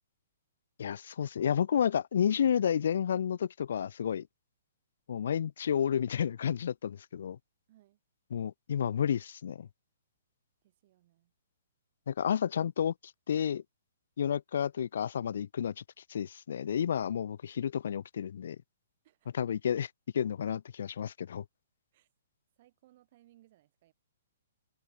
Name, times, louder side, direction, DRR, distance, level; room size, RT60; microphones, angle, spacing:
voice 1, 0.8-4.3 5.1-7.4 8.3-9.7 12.1-12.9 13.3-13.6 14.2-15.8 16.1-18.6 19.3-21.4, left 8 dB, 70° left, 0.5 m, -31 dB
voice 2, 7.7-8.0 10.6-11.3 19.0-19.5 21.9-22.1 22.6-23.9, right 15 dB, 50° right, 7.0 m, -65 dB
hypercardioid pair, 140°, 0 cm